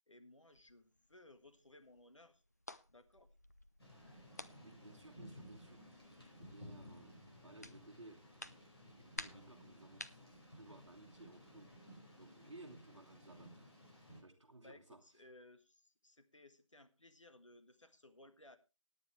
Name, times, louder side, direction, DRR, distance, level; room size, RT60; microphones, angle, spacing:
voice 1, 0.1-2.4 2.9-3.3 14.6-18.6, left 2 dB, 65° left, 1.6 m, -61 dB
sound 1, 0.5-11.8, left 1 dB, 30° left, 0.5 m, -56 dB
Thunder / Rain, 3.8-14.2, equal, 50° left, 5.3 m, -57 dB
voice 2, 4.6-11.9 12.1-13.7 14.2-15.2, right 2 dB, 60° right, 1.5 m, -59 dB
18.0 x 9.4 x 3.2 m
figure-of-eight pair, 165°, 17 cm